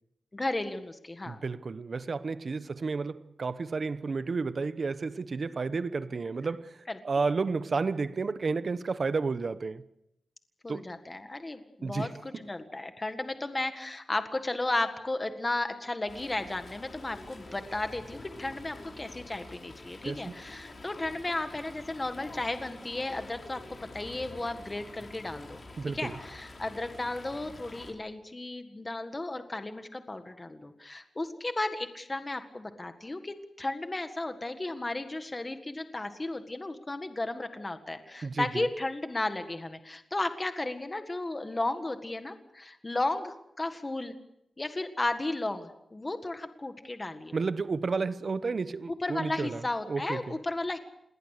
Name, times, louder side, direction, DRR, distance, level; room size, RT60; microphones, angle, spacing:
voice 1, 0.3-1.4 6.9-7.0 10.6-25.6 25.9-44.1 44.6-47.3 49.0-50.8, left 2 dB, 25° left, 1.7 m, -34 dB
voice 2, 1.3-9.8 10.7-10.9 11.8-12.4 20.0-20.4 25.8-26.2 38.2-38.7 47.3-50.3, right 4 dB, 50° right, 1.1 m, -32 dB
Fowl, 16.1-27.9, left 2 dB, 45° left, 5.0 m, -47 dB
28.0 x 21.0 x 6.7 m
wide cardioid pair, 125°, 0 cm